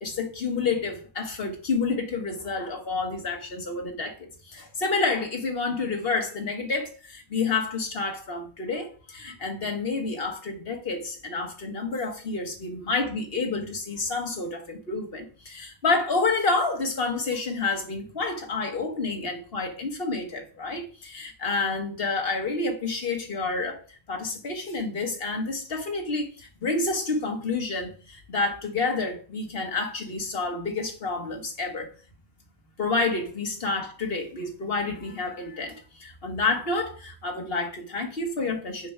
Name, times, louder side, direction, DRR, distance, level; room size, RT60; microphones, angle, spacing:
voice 1, 0.0-31.9 32.8-38.9, left 3 dB, 65° left, 1.6 m, -29 dB
7.0 x 4.6 x 5.5 m
omnidirectional pair, 1.1 m